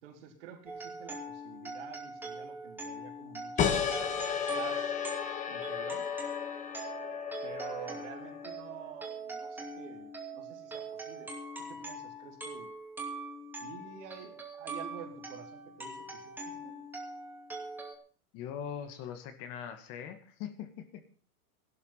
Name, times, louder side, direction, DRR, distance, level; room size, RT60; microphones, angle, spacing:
voice 1, 0.0-4.0 4.5-5.0 5.5-6.1 7.4-11.3 11.6-12.7 13.6-16.8, right 9 dB, 55° right, 3 dB, 4.6 m, -48 dB
sound 1, 0.7-17.9, right 2 dB, 5° right, 2.7 m, -42 dB
sound 2, 3.6-8.8, left 7 dB, 15° left, 1.5 m, -34 dB
voice 2, 18.3-21.0, left 8 dB, 35° left, 9 dB, 2.2 m, -41 dB
16.0 x 12.0 x 5.8 m, 0.41 s
supercardioid pair, 165°, 42 cm